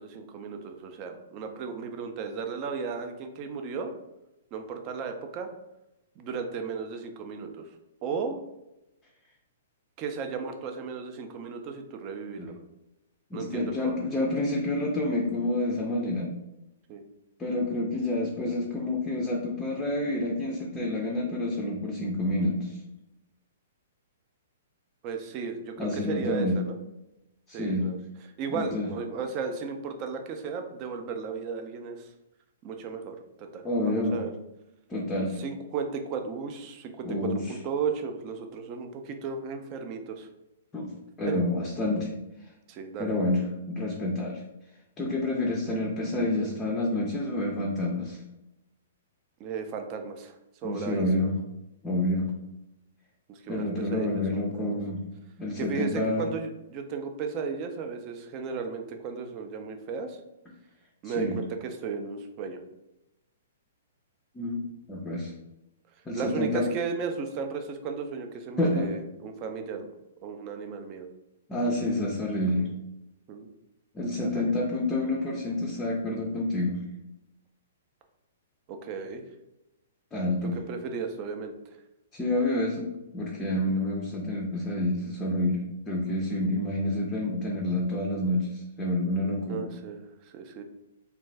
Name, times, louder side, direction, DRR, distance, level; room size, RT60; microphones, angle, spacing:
voice 1, 0.0-3.9 4.5-5.5 6.2-7.6 8.0-8.4 10.0-12.5 13.3-14.0 16.9-17.0 25.0-26.7 27.5-28.0 28.4-32.1 32.6-34.3 35.4-40.3 41.3-41.4 42.7-43.1 49.4-50.3 50.6-51.3 53.3-54.7 55.6-60.2 61.0-62.6 66.1-69.9 70.2-71.1 72.6-72.7 73.3-73.5 74.2-74.5 78.7-79.2 80.7-81.5 89.5-90.6, right 5 dB, 35° right, 5 dB, 0.4 m, -35 dB
voice 2, 13.3-16.3 17.4-22.8 25.8-26.6 27.5-27.9 28.5-28.9 33.6-34.2 34.9-35.4 37.1-37.4 40.7-40.9 41.2-42.2 43.0-44.4 45.0-48.2 50.6-51.4 51.8-52.3 53.5-55.0 55.4-56.3 61.0-61.4 64.3-65.3 66.1-66.7 68.6-68.9 71.5-72.7 73.9-76.8 80.1-80.6 82.1-89.7, left 1 dB, 15° left, -2 dB, 0.5 m, -28 dB
2.5 x 2.2 x 3.2 m, 0.92 s
hypercardioid pair, 130°, 0 cm